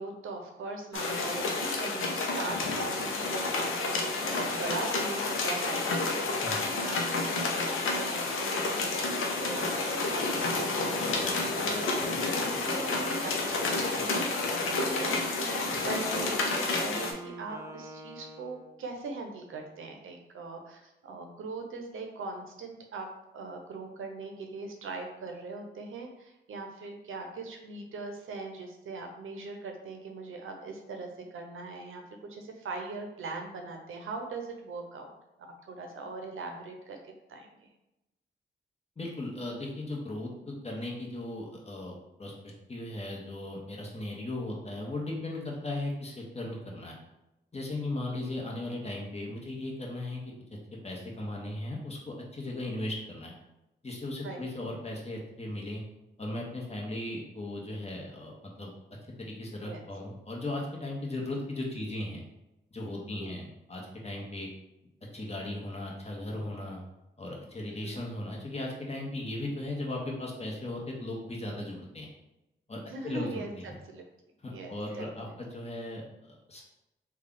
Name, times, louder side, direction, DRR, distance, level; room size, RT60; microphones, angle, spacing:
voice 1, 0.0-3.5 3.8-23.1 23.3-35.1 35.4-37.0 37.3-37.7 54.2-54.5 59.6-59.8 63.2-63.4 67.6-68.0 72.8-74.1 74.5-75.3, right 3 dB, 85° right, 3 dB, 0.6 m, -41 dB
sound 1, 0.9-17.1, left 3 dB, 90° left, 0.5 m, -30 dB
Wind instrument woodwind instrument, 9.9-18.9, right 2 dB, 15° right, 0.6 m, -43 dB
voice 2, 39.0-47.0 47.5-50.2 50.8-53.3 53.8-55.8 56.2-58.7 59.2-62.2 62.7-64.5 65.1-66.8 67.2-72.1 72.7-73.7 74.4-76.6, left 1 dB, 30° left, -1 dB, 1.1 m, -37 dB
3.3 x 2.3 x 3.8 m, 0.93 s
cardioid pair, 55°, 20 cm